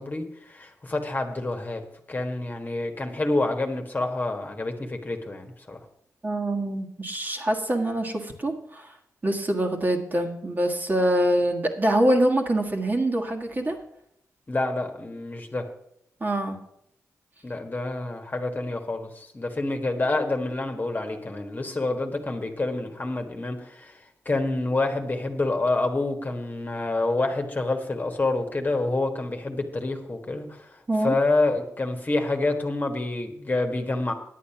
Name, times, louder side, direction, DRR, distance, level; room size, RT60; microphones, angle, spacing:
voice 1, 0.0-1.8 2.1-5.8 14.5-15.7 17.4-34.1, left 2 dB, 30° left, 4 dB, 1.5 m, -28 dB
voice 2, 6.2-9.0 9.2-13.8 16.2-16.6 30.9-31.2, right 1 dB, 30° right, 2 dB, 1.7 m, -24 dB
9.7 x 8.4 x 5.8 m, 0.75 s
cardioid pair, 60°, 6 cm